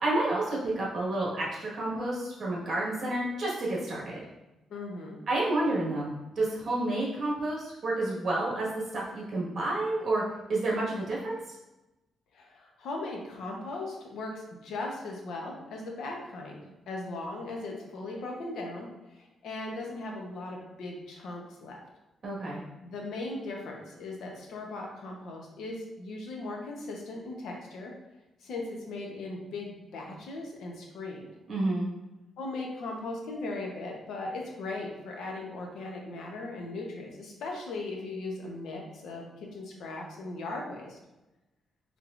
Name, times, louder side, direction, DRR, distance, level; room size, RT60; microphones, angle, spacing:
voice 1, 0.0-4.2 5.3-10.2 10.5-11.4 22.2-22.6 31.5-31.9, right 2 dB, 40° right, -5 dB, 1.5 m, -30 dB
voice 2, 4.7-5.2 12.3-16.6 16.9-21.8 22.8-27.9 28.4-31.3 32.4-41.0, left 2 dB, 75° left, 0 dB, 0.8 m, -38 dB
4.6 x 3.6 x 2.5 m, 1.0 s
cardioid pair, 160°, 0 cm